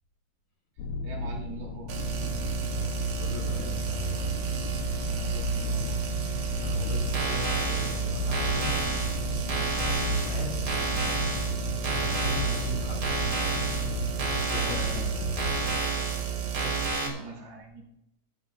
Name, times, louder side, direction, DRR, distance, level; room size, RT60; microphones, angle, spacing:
sound 1, 0.8-15.8, left 3 dB, 85° left, 1.6 m, -33 dB
voice 1, 1.0-1.9 5.1-6.0 9.4-9.7 14.6-15.1 16.6-17.8, right 4 dB, 80° right, -2 dB, 5.2 m, -41 dB
sound 2, 1.9-16.9, right 10 dB, 55° right, 2.0 m, -32 dB
voice 2, 3.2-4.4 6.6-8.7 9.9-11.1 11.8-13.2 14.3-15.3, left 3 dB, 40° left, -1 dB, 3.9 m, -40 dB
sound 3, 7.0-17.1, right 2 dB, 35° right, 3.2 m, -32 dB
21.0 x 13.5 x 2.5 m, 0.88 s
omnidirectional pair, 4.5 m